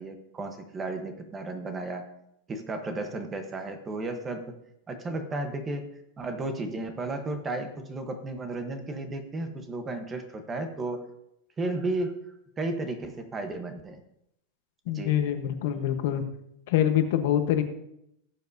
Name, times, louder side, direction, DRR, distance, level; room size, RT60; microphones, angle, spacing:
voice 1, 0.0-2.1 2.5-4.5 4.9-5.9 6.2-11.0 11.6-12.2 12.6-14.0 14.9-15.2, right 2 dB, 15° right, 6 dB, 1.1 m, -33 dB
voice 2, 14.9-16.2 16.7-17.6, left 10 dB, 60° left, 7 dB, 1.1 m, -25 dB
17.5 x 7.2 x 2.7 m, 0.79 s
supercardioid pair, 155°, 0 cm